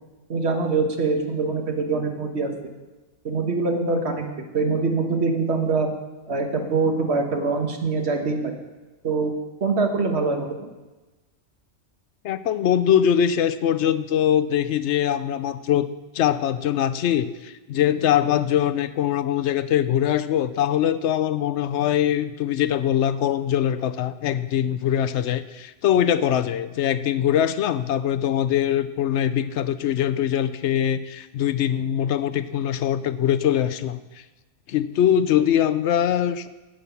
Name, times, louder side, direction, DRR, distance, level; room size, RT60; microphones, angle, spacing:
voice 1, 0.3-2.5 3.2-4.2 4.5-5.9 6.3-8.5 9.0-9.3 9.6-10.7, right 4 dB, 65° right, 3 dB, 1.6 m, -24 dB
voice 2, 12.2-34.0 34.7-36.5, left 10 dB, 80° left, 14 dB, 0.9 m, -22 dB
10.0 x 9.0 x 6.9 m, 1.2 s
omnidirectional pair, 1.2 m